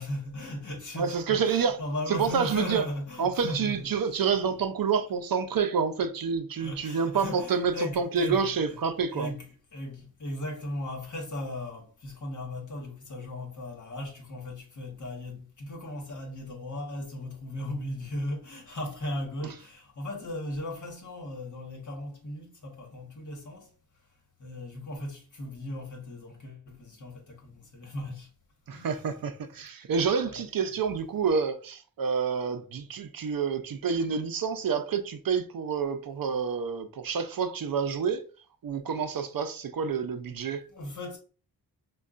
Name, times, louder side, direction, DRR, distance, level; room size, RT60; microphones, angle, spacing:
voice 1, 0.0-4.6 6.6-23.7 24.4-28.3 28.7-28.9 30.3-30.8 40.7-41.2, left 1 dB, 50° left, 1.3 m, -37 dB
voice 2, 1.0-1.8 2.1-2.8 3.2-9.3 28.7-38.2 38.6-40.6, right 6 dB, 65° right, 0.5 m, -28 dB
5.3 x 2.3 x 2.4 m
wide cardioid pair, 110°, 37 cm